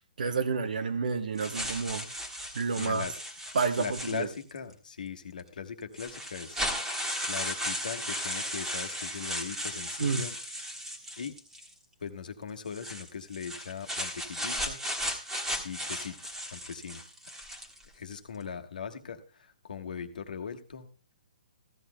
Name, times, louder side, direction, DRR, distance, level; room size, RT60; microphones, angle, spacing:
voice 1, 0.0-2.1 2.5-3.0 3.5-4.3 10.0-10.2, right 5 dB, 75° right, 10 dB, 1.1 m, -30 dB
sound 1, 1.4-4.6 5.4-5.5 6.0-11.7 12.7-17.8, equal, 5° right, 1.6 m, -36 dB
voice 2, 2.7-3.1 3.8-6.6 7.3-10.4 10.7-10.8 11.2-11.3 12.0-14.8 15.6-17.0 17.9-20.9, left 6 dB, 75° left, 6 dB, 1.3 m, -39 dB
15.0 x 13.0 x 2.2 m, 0.37 s
hypercardioid pair, 145°, 4 cm